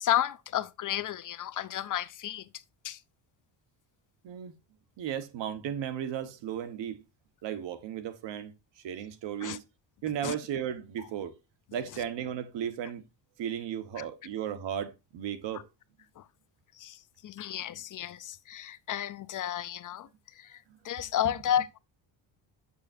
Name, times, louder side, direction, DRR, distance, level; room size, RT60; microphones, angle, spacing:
voice 1, 0.0-2.5 2.8-3.0 9.4-9.6 10.2-10.4 14.0-14.1 16.2-16.3 16.8-20.1 20.4-21.8, left 11 dB, 45° left, 0.5 m, -32 dB
voice 2, 5.0-7.0 7.4-8.5 8.8-9.6 10.0-11.3 11.7-13.0 13.4-15.7 21.2-21.3, right 9 dB, 70° right, 1.2 m, -35 dB
7.7 x 6.8 x 2.5 m
cardioid pair, 145°, 45 cm